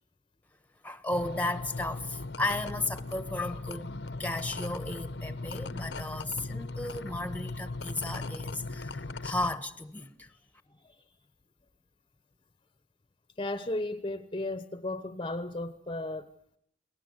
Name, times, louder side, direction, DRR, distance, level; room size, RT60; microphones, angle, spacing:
voice 1, 0.8-3.9 4.2-10.3, left 2 dB, 10° left, 1.2 m, -34 dB
sound 1, 1.1-9.5, left 2 dB, 70° left, 0.9 m, -38 dB
voice 2, 13.4-16.2, left 2 dB, 25° left, 1.0 m, -34 dB
29.0 x 19.5 x 8.1 m
head